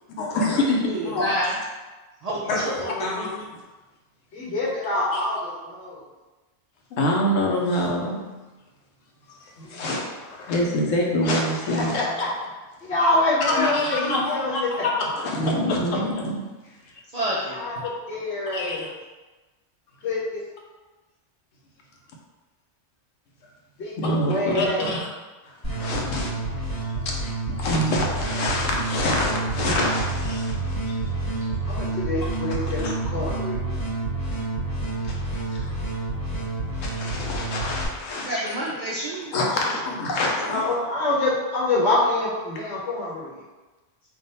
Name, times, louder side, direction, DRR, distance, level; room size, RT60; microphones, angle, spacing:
voice 1, 0.2-1.3 2.5-3.3 5.1-5.2 6.9-8.2 9.3-12.1 13.5-16.3 17.8-17.9 18.5-18.9 24.0-25.1 25.4-26.3 27.0-27.1 27.5-31.1 32.2-32.3 32.8-32.9 35.0-35.2 35.5-35.7 36.8-38.4 39.3-40.7, left 1 dB, 85° left, -2 dB, 1.1 m, -26 dB
voice 2, 0.8-1.5 2.2-3.3 17.1-17.7 38.2-39.8 40.2-40.3, equal, 55° right, -5 dB, 0.4 m, -29 dB
voice 3, 4.3-6.0 9.6-9.8 11.7-11.8 12.8-14.8 17.5-18.9 20.0-20.4 23.8-24.9 31.7-33.6 40.4-43.3, left 2 dB, 65° left, -7 dB, 1.1 m, -26 dB
sound 1, 25.6-37.8, right 2 dB, 15° left, 1.2 m, -28 dB
3.6 x 2.4 x 4.0 m, 1.2 s
omnidirectional pair, 1.3 m